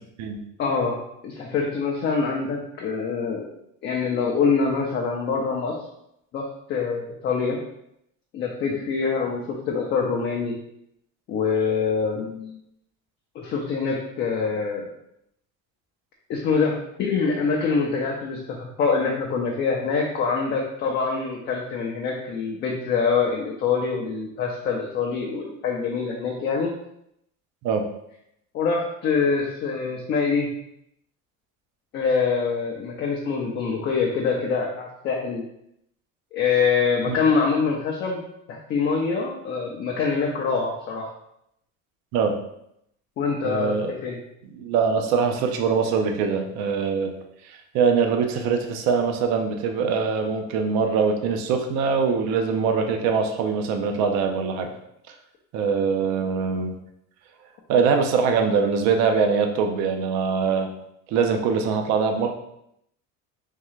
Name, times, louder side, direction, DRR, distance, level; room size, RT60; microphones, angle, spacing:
voice 1, 0.6-1.0 1.2-3.5 3.8-5.7 6.3-6.4 6.7-7.6 8.3-10.5 11.3-12.6 13.3-14.9 16.3-26.7 28.5-30.5 31.9-35.4 36.3-38.2 38.5-41.1 43.2-44.2, left 5 dB, 30° left, -2 dB, 0.4 m, -25 dB
voice 2, 43.4-43.9 44.5-47.1 47.7-54.7 55.5-56.7 57.7-60.7 61.1-62.3, right 5 dB, 50° right, 5 dB, 0.5 m, -23 dB
3.7 x 3.2 x 3.1 m, 0.76 s
cardioid pair, 170°, 37 cm